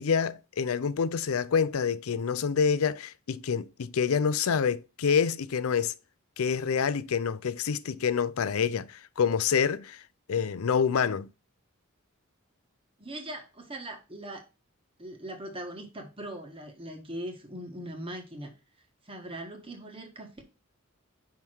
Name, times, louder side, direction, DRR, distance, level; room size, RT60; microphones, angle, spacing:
voice 1, 0.0-5.9 6.4-10.0 10.3-11.3, left 6 dB, 90° left, 0.5 m, -27 dB
voice 2, 13.0-14.4 15.0-18.5 19.0-20.4, right 1 dB, 25° right, 1.4 m, -40 dB
5.5 x 4.8 x 4.5 m
head